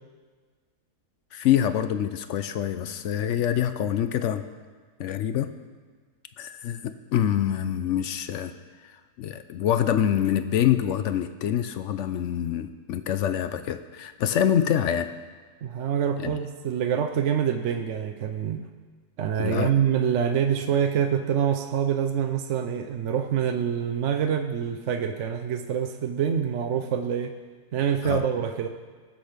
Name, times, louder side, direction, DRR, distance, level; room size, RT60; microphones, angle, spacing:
voice 1, 1.3-4.4 5.0-5.5 6.4-8.5 8.8-15.1 16.2-16.4 19.4-19.7 28.0-28.3, left 10 dB, 70° left, 11 dB, 0.7 m, -26 dB
voice 2, 15.6-18.7 19.2-27.3 27.7-28.7, right 8 dB, 60° right, 6 dB, 0.8 m, -26 dB
18.5 x 6.3 x 5.0 m, 1.5 s
omnidirectional pair, 1.7 m